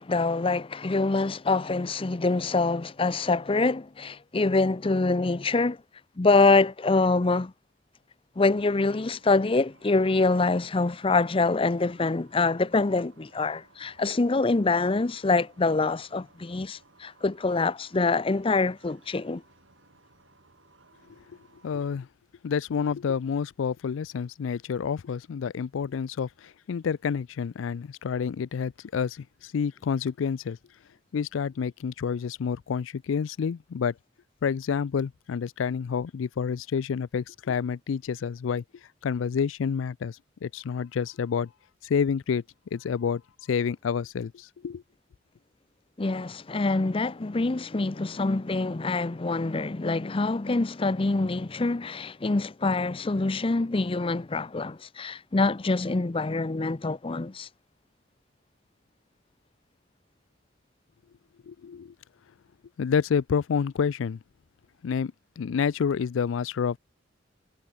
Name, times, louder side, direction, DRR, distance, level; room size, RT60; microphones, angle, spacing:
voice 1, 0.0-5.8 6.2-7.5 8.4-19.4 46.0-57.5, left 3 dB, 30° left, 0.6 m, -25 dB
sound 1, 8.9-22.0, right 3 dB, 85° right, 6.6 m, -60 dB
voice 2, 21.6-22.1 22.4-30.6 31.1-33.9 34.4-38.6 39.0-41.5 41.8-42.4 42.7-43.2 43.5-44.8 61.5-61.9 62.8-64.2 64.8-66.8, left 6 dB, 85° left, 0.4 m, -29 dB
head